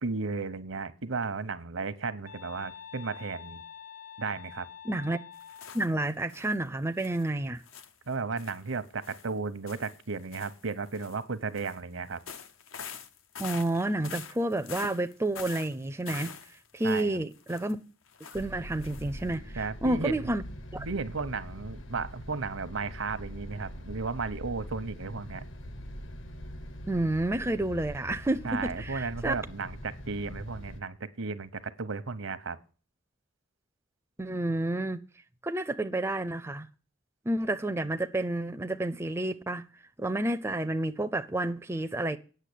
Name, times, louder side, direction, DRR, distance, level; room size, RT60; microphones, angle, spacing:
voice 1, 0.0-3.6 4.2-4.7 8.1-12.2 16.8-17.2 19.6-20.1 20.8-25.4 28.4-32.6, right 4 dB, 80° right, 0.9 m, -34 dB
sound 1, 2.3-5.9, left 8 dB, 50° left, 0.7 m, -47 dB
voice 2, 4.8-5.2 5.7-7.6 13.4-16.3 16.7-17.8 18.3-20.4 20.7-20.9 26.9-29.4 34.2-35.0 35.4-36.7 37.3-39.7 40.0-42.2, right 1 dB, 10° right, 0.4 m, -30 dB
sound 2, 5.3-6.6 7.0-7.3 7.6-11.2 11.5-11.8 12.1-17.7 18.1-18.5 18.7-19.1 19.3-19.4, left 7 dB, 85° left, 0.9 m, -45 dB
sound 3, 18.3-30.8, equal, 65° left, 1.1 m, -43 dB
9.2 x 6.7 x 8.5 m
head